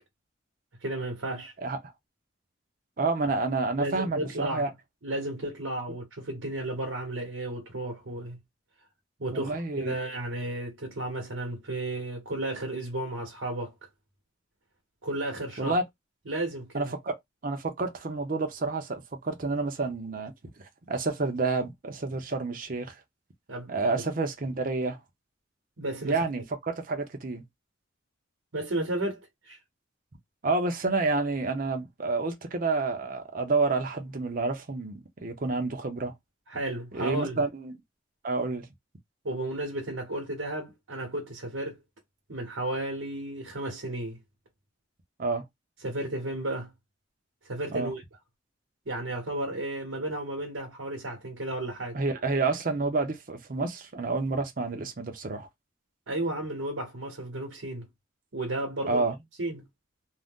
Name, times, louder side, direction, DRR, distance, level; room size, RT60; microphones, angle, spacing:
voice 1, 0.8-1.5 3.8-4.7 5.0-8.4 9.2-13.7 15.0-15.8 16.3-16.9 23.5-24.0 25.8-26.2 28.5-29.6 36.5-37.4 39.2-41.8 42.3-44.2 45.8-46.7 47.4-48.0 48.9-52.0 56.1-57.9 58.3-59.0 59.4-59.7, right 1 dB, 85° right, 1.0 m, -33 dB
voice 2, 3.0-4.7 9.3-9.9 15.6-15.8 16.7-17.2 17.4-20.3 20.6-23.0 23.7-25.0 26.0-27.4 30.4-36.1 36.9-37.7 38.2-38.7 45.2-45.4 47.7-47.9 51.9-55.5 58.9-59.2, right 3 dB, 45° right, 0.6 m, -29 dB
2.6 x 2.2 x 3.5 m
head